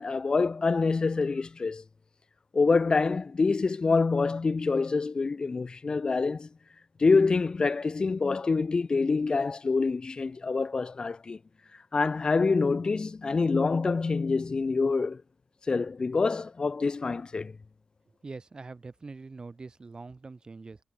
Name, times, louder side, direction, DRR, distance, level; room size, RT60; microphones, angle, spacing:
voice 1, 0.0-1.8 2.5-6.5 7.0-11.4 11.9-15.2 15.7-17.5, left 4 dB, 40° left, 0.5 m, -26 dB
voice 2, 18.2-20.8, right 3 dB, 40° right, 3.3 m, -43 dB
cardioid pair, 70°, 2 cm